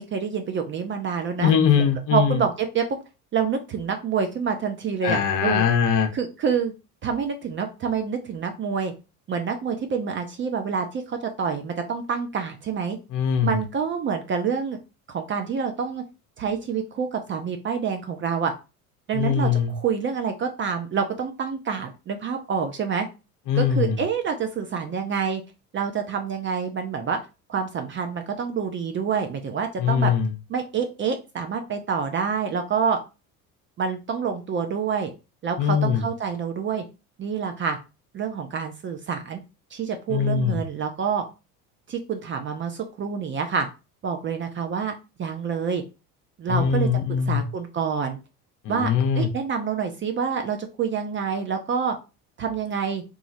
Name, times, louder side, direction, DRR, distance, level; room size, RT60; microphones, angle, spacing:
voice 1, 0.0-1.5 2.1-3.0 3.3-5.6 6.1-6.7 7.0-8.9 9.3-13.0 13.4-14.8 15.1-16.0 16.4-18.5 19.1-23.1 23.6-25.4 25.7-27.2 27.5-30.1 30.5-33.0 33.8-35.1 35.4-36.8 37.2-37.8 38.1-39.4 39.7-41.2 41.9-43.7 44.0-44.9 45.2-45.8 46.4-46.9 47.3-48.2 48.7-52.0 52.4-53.0, right 6 dB, 30° right, 5 dB, 0.4 m, -27 dB
voice 2, 1.4-2.4 5.0-6.1 13.1-13.6 19.1-19.7 23.5-24.0 29.8-30.3 35.6-36.0 40.1-40.6 46.5-47.4 48.6-49.3, left 7 dB, 45° left, 6 dB, 0.6 m, -22 dB
3.0 x 2.4 x 2.5 m, 0.29 s
hypercardioid pair, 75°, 45 cm